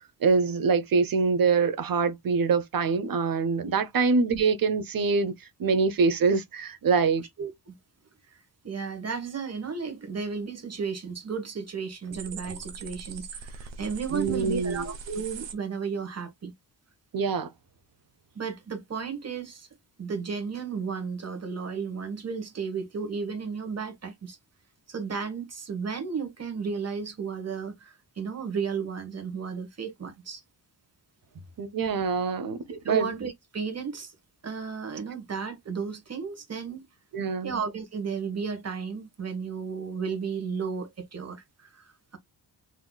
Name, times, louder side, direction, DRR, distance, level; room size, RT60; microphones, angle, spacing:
voice 1, 0.2-5.3 5.6-7.2 14.1-14.8 17.1-17.5 31.6-33.1 37.1-37.5, right 5 dB, 50° right, 0.8 m, -24 dB
voice 2, 7.4-7.7 8.3-8.4 8.6-16.5 18.3-19.7 20.0-24.4 24.9-30.4 32.7-34.1 34.4-36.9 37.4-42.2, right 5 dB, 35° right, 1.2 m, -34 dB
sound 1, 12.1-15.5, right 5 dB, 85° right, 1.0 m, -41 dB
3.9 x 2.9 x 2.2 m
cardioid pair, 90°, 43 cm